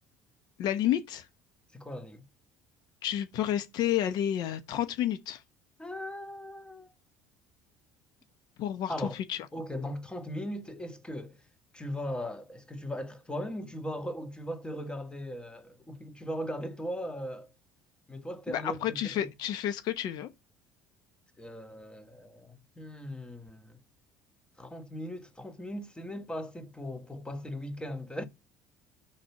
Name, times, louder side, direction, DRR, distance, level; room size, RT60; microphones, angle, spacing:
voice 1, 0.6-1.3 3.0-5.4 8.6-8.9 9.3-9.4 18.5-20.3, left 11 dB, 60° left, 0.9 m, -30 dB
voice 2, 1.7-2.2 5.8-6.9 8.9-9.2 9.5-11.4 11.7-17.5 18.1-19.3 21.4-23.8 24.6-28.3, equal, 10° left, 1.6 m, -38 dB
6.2 x 5.9 x 6.9 m
hypercardioid pair, 65°, 8 cm